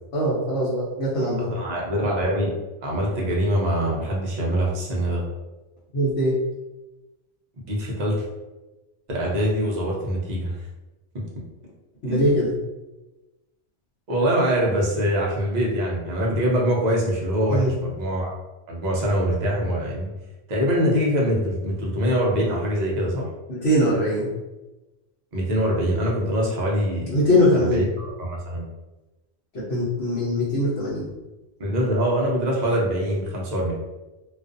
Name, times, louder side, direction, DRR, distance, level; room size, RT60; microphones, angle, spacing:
voice 1, 0.1-1.5 5.9-6.4 12.0-12.5 17.5-17.7 23.5-24.3 27.1-27.9 29.5-31.1, equal, 70° left, -8 dB, 1.0 m, -22 dB
voice 2, 1.4-2.5 2.8-5.2 7.7-8.2 9.1-10.6 11.1-11.2 12.1-12.2 14.1-18.3 18.7-20.1 20.5-23.3 25.3-27.2 27.5-28.6 31.6-33.7, equal, 45° right, -3 dB, 0.7 m, -24 dB
2.4 x 2.4 x 2.5 m, 1.1 s
omnidirectional pair, 1.2 m